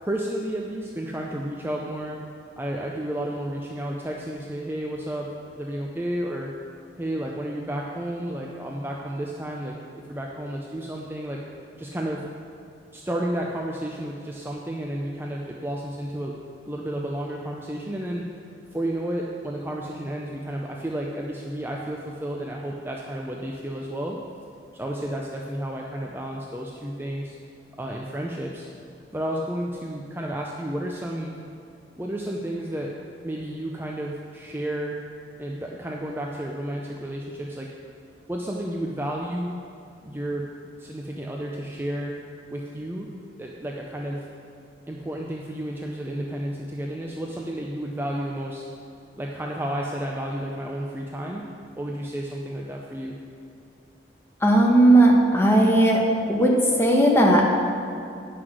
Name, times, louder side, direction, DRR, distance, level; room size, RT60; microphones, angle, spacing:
voice 1, 0.0-2.2 2.6-6.5 7.0-11.4 11.8-12.2 12.9-16.4 16.6-18.3 18.7-24.2 24.7-27.4 27.8-28.7 29.1-31.4 32.0-33.0 33.2-35.0 35.4-37.7 38.3-39.5 40.0-40.5 40.8-42.2 42.5-43.1 43.4-44.2 44.9-48.6 49.2-51.4 51.8-53.2, right 1 dB, 10° right, -1 dB, 0.5 m, -31 dB
voice 2, 54.4-56.0 56.3-56.5 56.8-57.5, right 1 dB, 15° left, -2 dB, 1.2 m, -17 dB
9.6 x 6.0 x 6.2 m, 2.5 s
head